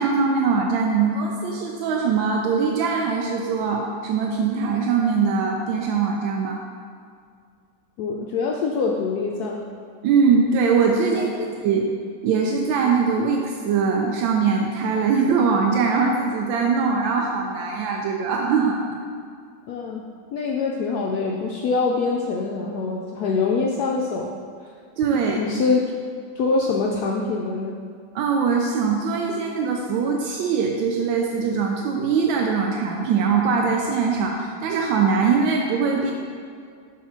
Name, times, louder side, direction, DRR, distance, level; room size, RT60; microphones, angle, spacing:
voice 1, 0.0-6.6 10.0-11.3 11.6-11.9 12.2-18.8 25.0-25.4 28.1-36.1, right 5 dB, 85° right, 1 dB, 1.3 m, -22 dB
voice 2, 8.0-9.6 11.1-11.5 19.7-20.0 20.3-24.3 25.3-25.8 26.4-27.8, left 4 dB, 75° left, -1 dB, 0.9 m, -24 dB
6.4 x 3.4 x 5.5 m, 2.2 s
omnidirectional pair, 2.1 m